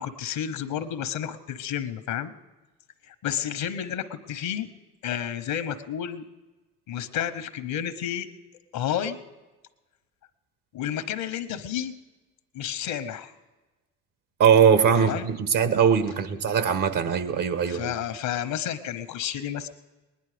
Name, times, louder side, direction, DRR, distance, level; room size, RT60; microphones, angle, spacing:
voice 1, 0.0-2.3 3.0-4.7 5.0-6.2 6.9-8.3 8.7-9.2 10.7-11.9 12.5-13.3 14.9-15.3 17.7-19.7, left 10 dB, 80° left, 11 dB, 1.1 m, -31 dB
voice 2, 14.4-17.9, right 7 dB, 70° right, 10 dB, 1.3 m, -21 dB
20.0 x 10.5 x 5.0 m, 1.2 s
supercardioid pair, 60°, 34 cm